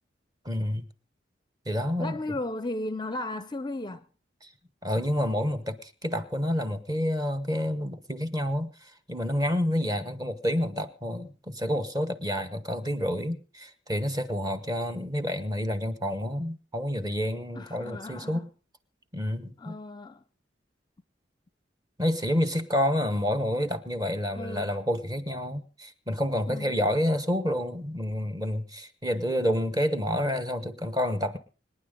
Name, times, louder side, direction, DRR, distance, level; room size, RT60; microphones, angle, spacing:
voice 1, 0.4-0.9 1.7-2.2 4.8-18.5 19.1-19.8 22.0-31.4, equal, 20° right, 1.1 m, -29 dB
voice 2, 2.0-4.1 17.5-18.4 19.6-20.2 24.3-24.7 26.5-26.7, left 2 dB, 25° left, 0.6 m, -35 dB
25.5 x 9.9 x 3.8 m
head